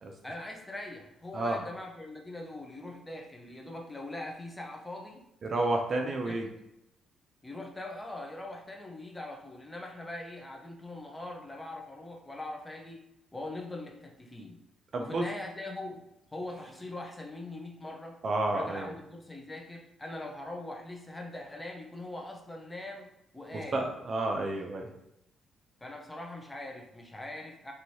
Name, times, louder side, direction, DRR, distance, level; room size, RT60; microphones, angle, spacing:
voice 1, 0.2-5.3 5.9-6.5 7.4-14.6 15.0-18.2 18.5-23.9 25.8-27.7, left 2 dB, 15° left, 1 dB, 0.6 m, -42 dB
voice 2, 5.4-6.5 14.9-15.2 18.2-18.9 23.5-24.9, right 2 dB, 45° right, 3 dB, 0.5 m, -30 dB
3.0 x 2.6 x 2.7 m, 0.85 s
cardioid pair, 90°, 0 cm